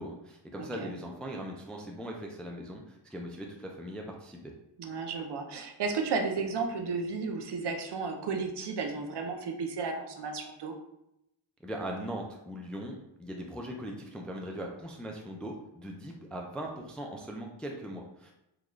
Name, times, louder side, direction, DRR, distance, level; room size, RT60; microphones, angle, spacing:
voice 1, 0.0-4.5 11.6-18.3, equal, ahead, 1 dB, 0.3 m, -40 dB
voice 2, 0.6-0.9 4.8-10.8, right 4 dB, 60° right, 4 dB, 0.6 m, -33 dB
3.8 x 2.3 x 3.1 m, 0.84 s
wide cardioid pair, 105°, 46 cm